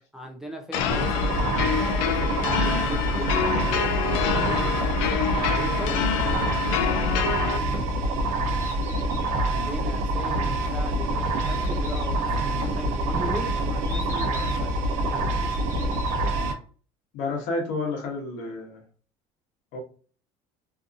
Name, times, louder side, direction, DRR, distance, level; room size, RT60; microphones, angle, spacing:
voice 1, 0.1-3.3 4.0-6.0 6.3-7.3 9.3-15.6, equal, 5° right, 0.3 m, -39 dB
sound 1, 0.7-7.6, left 8 dB, 90° left, 0.4 m, -27 dB
sound 2, 0.9-16.5, right 1 dB, 60° right, 0.7 m, -26 dB
Bird, 8.4-16.4, left 2 dB, 20° left, 0.8 m, -45 dB
voice 2, 17.1-18.8 19.7-19.8, left 3 dB, 65° left, 0.9 m, -30 dB
2.7 x 2.5 x 2.5 m
cardioid pair, 155°, 14 cm